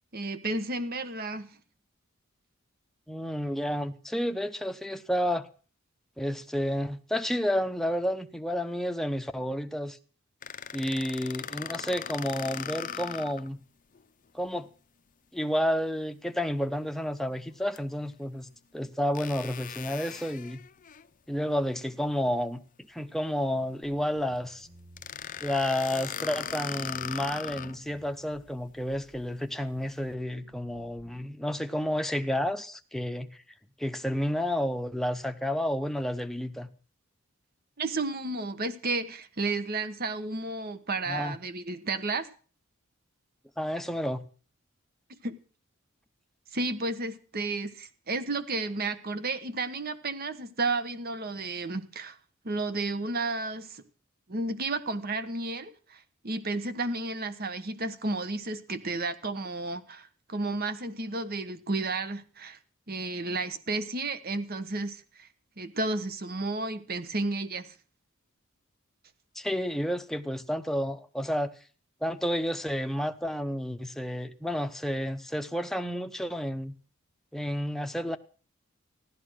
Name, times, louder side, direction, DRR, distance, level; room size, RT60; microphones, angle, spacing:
voice 1, 0.1-1.6 37.8-42.3 45.1-45.4 46.5-52.2 52.4-53.8 54.3-62.6 62.9-65.3 65.6-67.7, right 3 dB, 45° right, 1.3 m, -32 dB
voice 2, 3.1-5.5 6.2-10.0 10.7-13.6 14.3-14.7 15.3-18.5 18.7-20.6 21.3-22.6 22.9-24.7 25.4-33.4 33.8-36.7 41.1-41.4 43.6-44.3 69.4-71.5 72.0-76.7 77.3-78.2, equal, ahead, 0.9 m, -30 dB
sound 1, 10.4-13.5 14.0-14.1 17.8-17.9 19.2-21.1 25.0-27.8, left 8 dB, 40° left, 0.6 m, -38 dB
sound 2, 23.8-31.2, right 1 dB, 75° right, 7.4 m, -56 dB
15.0 x 12.0 x 6.3 m
head